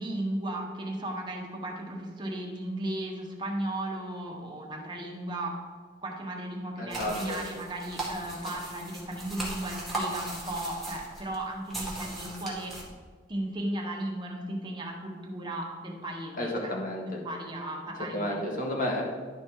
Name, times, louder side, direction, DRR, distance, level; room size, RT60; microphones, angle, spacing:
voice 1, 0.0-5.6 6.0-12.9 13.3-16.7 17.1-18.7, right 1 dB, 25° right, -1 dB, 1.5 m, -35 dB
voice 2, 6.8-7.4 16.4-17.2 18.1-19.0, left 1 dB, 50° left, -1 dB, 1.9 m, -31 dB
sound 1, 6.9-12.8, right 1 dB, ahead, 2.0 m, -38 dB
11.5 x 5.3 x 4.7 m, 1.5 s
head